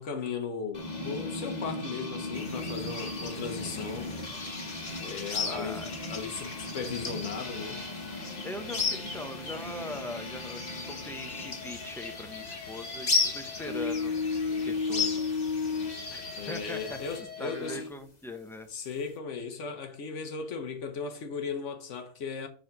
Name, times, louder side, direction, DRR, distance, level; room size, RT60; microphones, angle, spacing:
voice 1, 0.0-4.1 5.0-5.8 6.1-7.8 16.4-17.8 18.7-22.5, left 5 dB, 80° left, 1.3 m, -37 dB
sound 1, 0.7-17.9, left 3 dB, 35° left, 1.2 m, -36 dB
sound 2, 2.3-17.2, left 4 dB, 60° left, 1.5 m, -36 dB
voice 2, 5.4-5.9 8.4-14.1 14.7-15.5 16.1-16.2 16.5-17.0 17.4-18.7, left 1 dB, 5° left, 0.5 m, -41 dB
4.9 x 4.1 x 5.9 m
omnidirectional pair, 1.2 m